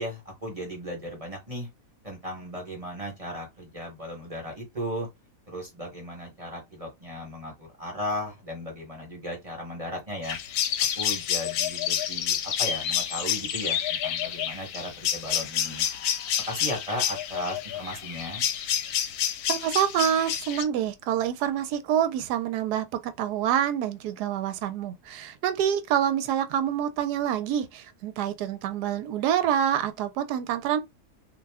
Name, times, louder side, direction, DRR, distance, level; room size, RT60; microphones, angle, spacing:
voice 1, 0.0-1.7 2.0-5.1 5.5-10.4 11.0-15.9 16.4-18.4, equal, 25° right, 1.0 m, -36 dB
sound 1, 10.2-20.6, left 10 dB, 75° left, 1.0 m, -29 dB
voice 2, 19.5-30.8, right 10 dB, 80° right, 1.1 m, -27 dB
2.7 x 2.2 x 3.4 m
omnidirectional pair, 1.7 m